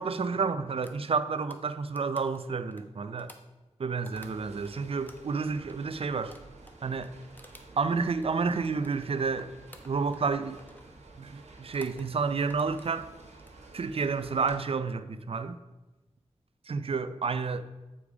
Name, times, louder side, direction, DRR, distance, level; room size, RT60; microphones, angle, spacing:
voice 1, 0.0-3.3 3.8-6.4 6.8-7.1 7.8-9.5 9.8-10.6 11.2-13.1 13.7-15.6 16.7-17.6, right 5 dB, 55° right, 0.5 m, -30 dB
sound 1, 0.8-4.7 5.1-9.3 9.7-10.3 10.6-10.9 11.6-12.1 12.4-13.6 14.1-14.5, left 1 dB, 15° left, 0.9 m, -55 dB
sound 2, 4.1-14.6, right 3 dB, 80° right, 1.2 m, -52 dB
7.0 x 4.9 x 4.9 m
cardioid pair, 50°, 11 cm